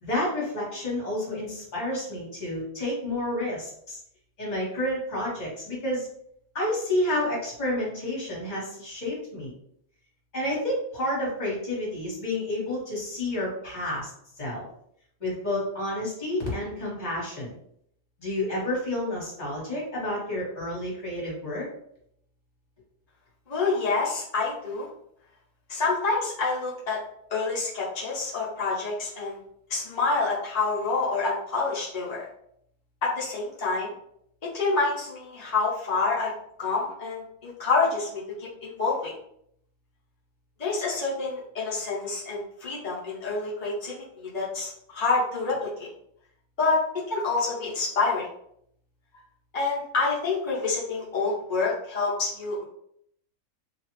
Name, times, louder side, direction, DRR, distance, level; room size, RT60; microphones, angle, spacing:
voice 1, 0.0-4.0 4.4-6.1 6.5-9.5 10.3-14.1 14.4-14.7 15.2-17.5 18.2-21.7, left 1 dB, 30° left, -5 dB, 1.1 m, -30 dB
voice 2, 23.5-24.9 25.7-27.0 27.3-29.4 29.7-32.2 33.0-33.9 34.5-36.3 36.6-39.1 40.6-43.9 44.3-45.9 46.6-46.8 47.1-48.2 49.5-52.6, left 3 dB, 55° left, -7 dB, 0.4 m, -27 dB
2.8 x 2.4 x 3.0 m, 0.71 s
omnidirectional pair, 1.8 m